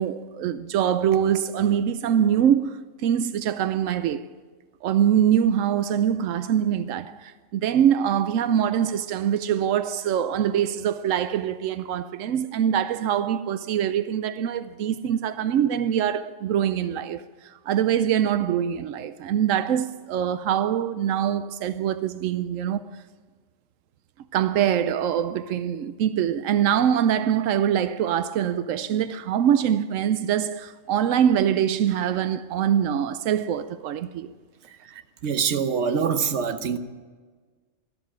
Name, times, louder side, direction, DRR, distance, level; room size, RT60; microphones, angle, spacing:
voice 1, 0.0-4.2 4.8-22.8 24.3-34.3, right 9 dB, 90° right, 1.0 m, -24 dB
voice 2, 34.7-36.8, right 6 dB, 65° right, 1.2 m, -25 dB
13.0 x 12.5 x 8.7 m
omnidirectional pair, 1.3 m